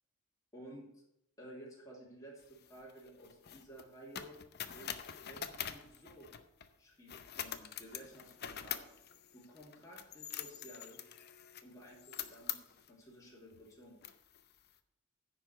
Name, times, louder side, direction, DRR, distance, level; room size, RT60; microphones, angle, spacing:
voice 1, 0.5-1.0 1.4-4.4 4.7-6.3 6.8-8.8 9.3-11.0 11.6-14.0, right 1 dB, 15° left, -4 dB, 3.0 m, -54 dB
sound 1, 2.4-6.7 7.1-12.9 13.5-13.6 14.0-14.7, left 10 dB, 45° left, 0.6 m, -45 dB
10.5 x 4.9 x 7.7 m, 0.80 s
head